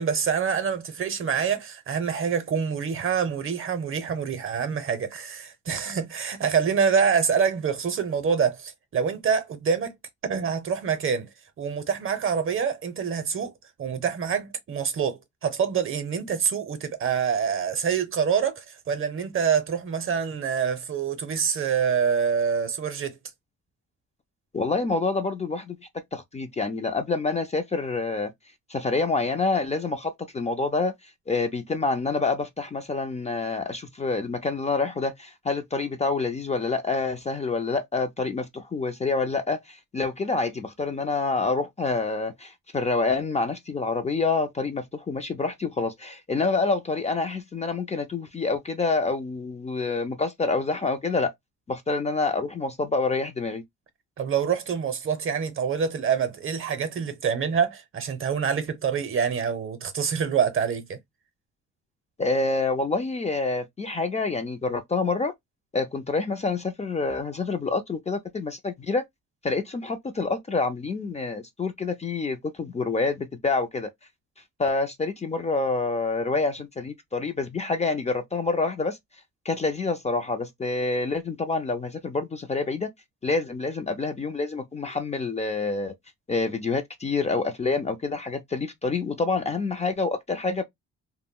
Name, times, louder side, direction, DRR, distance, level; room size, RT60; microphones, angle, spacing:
voice 1, 0.0-9.9 10.3-11.3 11.6-13.5 13.8-23.2 54.2-61.0, right 6 dB, 45° right, 0.7 m, -26 dB
voice 2, 24.5-25.8 26.1-28.3 28.7-30.9 31.3-51.3 51.7-53.6 62.2-65.3 65.7-69.0 69.4-73.9 74.6-79.0 79.5-82.9 83.2-85.9 86.3-90.6, left 3 dB, 25° left, 0.4 m, -27 dB
2.2 x 2.1 x 3.5 m
cardioid pair, 90°, 30 cm